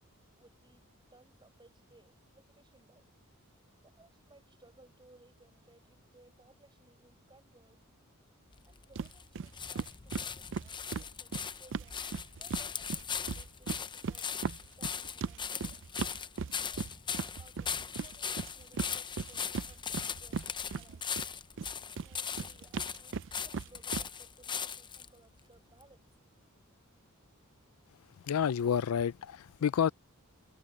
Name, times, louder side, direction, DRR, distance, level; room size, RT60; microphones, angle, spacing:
voice 1, 0.3-0.8 1.1-3.1 3.8-7.9 8.6-12.1 12.3-14.3 14.6-15.8 16.6-17.0 17.4-21.3 21.9-26.1, right 2 dB, 20° right, 7.5 m, -62 dB
sound 1, 8.5-25.1 25.8-25.9, left 7 dB, 20° left, 0.6 m, -39 dB
sound 2, 8.9-9.1 9.3-9.5 9.7-12.6 12.9-21.3 21.6-24.1, right 5 dB, 60° right, 0.5 m, -37 dB
voice 2, 28.3-29.9, left 8 dB, 90° left, 0.4 m, -29 dB
head